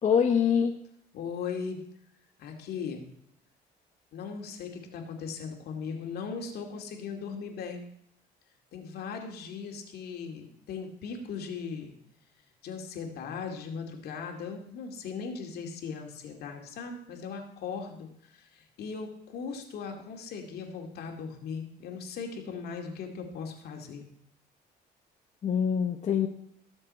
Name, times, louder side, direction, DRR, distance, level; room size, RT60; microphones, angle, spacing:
voice 1, 0.0-0.8 25.4-26.3, left 7 dB, 45° left, 3 dB, 1.1 m, -24 dB
voice 2, 1.1-1.8 2.4-3.1 4.1-7.8 8.7-11.9 12.6-24.0, left 5 dB, 70° left, 3 dB, 2.4 m, -38 dB
19.5 x 7.1 x 4.3 m, 0.71 s
cardioid pair, 110°, 17 cm